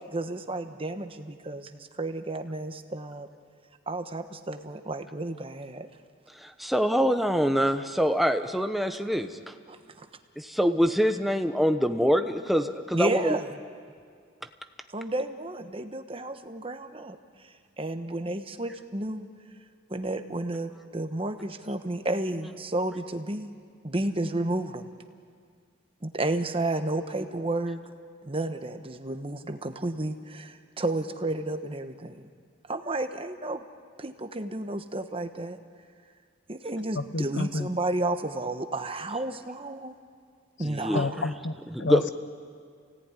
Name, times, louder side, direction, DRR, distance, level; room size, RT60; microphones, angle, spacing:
voice 1, 0.0-3.3 3.9-5.9 9.7-10.1 12.9-13.5 14.9-19.3 19.9-23.5 23.8-24.9 26.0-27.8 28.2-32.3 32.7-33.6 34.0-35.6 36.5-39.9 40.6-41.2, right 2 dB, 25° right, 7 dB, 1.2 m, -32 dB
voice 2, 6.4-9.3 10.4-13.4 40.6-41.1 41.7-42.1, equal, ahead, 7 dB, 1.0 m, -25 dB
voice 3, 36.9-37.7 40.9-42.1, left 3 dB, 60° left, 12 dB, 1.0 m, -30 dB
29.5 x 17.5 x 9.9 m, 2.1 s
head